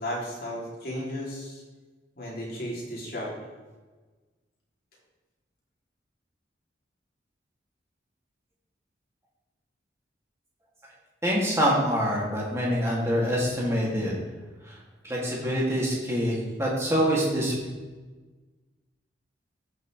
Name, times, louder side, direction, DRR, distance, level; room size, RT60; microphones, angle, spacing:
voice 1, 0.0-1.6 2.2-3.3, equal, 55° left, -4 dB, 3.0 m, -34 dB
voice 2, 11.2-14.1 14.7-14.8 15.0-17.5, equal, 15° right, -5 dB, 2.5 m, -25 dB
15.0 x 6.4 x 3.3 m, 1.3 s
head